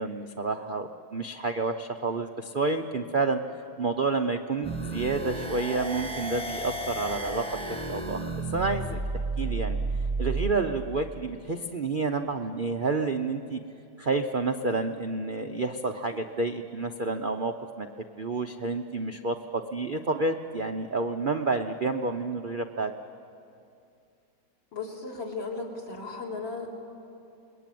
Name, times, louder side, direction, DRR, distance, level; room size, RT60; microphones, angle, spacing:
voice 1, 0.0-3.4 3.8-7.5 7.9-8.2 8.5-9.0 9.4-9.8 10.2-13.6 14.0-17.9 18.2-22.9, right 3 dB, 90° right, 5 dB, 0.4 m, -29 dB
sound 1, 4.6-10.6, right 2 dB, 5° left, 0.9 m, -32 dB
voice 2, 24.7-26.7, left 4 dB, 70° left, -2 dB, 4.3 m, -36 dB
28.5 x 21.0 x 9.2 m, 2.6 s
omnidirectional pair, 2.2 m